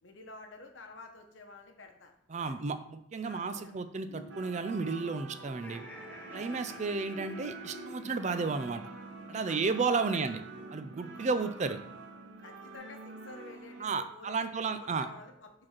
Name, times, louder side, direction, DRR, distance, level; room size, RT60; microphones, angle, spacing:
voice 1, 0.0-2.1 2.5-2.6 3.2-3.8 5.6-5.9 6.3-6.6 9.5-9.7 10.0-10.3 11.1-11.3 12.4-15.5, left 3 dB, 70° left, 4 dB, 1.0 m, -51 dB
voice 2, 2.3-5.8 6.3-8.8 9.3-10.4 10.7-11.8 13.8-15.1, right 4 dB, 35° right, 10 dB, 0.4 m, -33 dB
sound 1, 4.1-12.8, right 2 dB, 35° left, 2.0 m, -50 dB
sound 2, 4.3-13.8, right 3 dB, 65° right, 0.8 m, -47 dB
Laughter, 5.4-8.7, left 1 dB, 10° left, 0.9 m, -53 dB
5.1 x 4.1 x 5.8 m, 0.72 s
head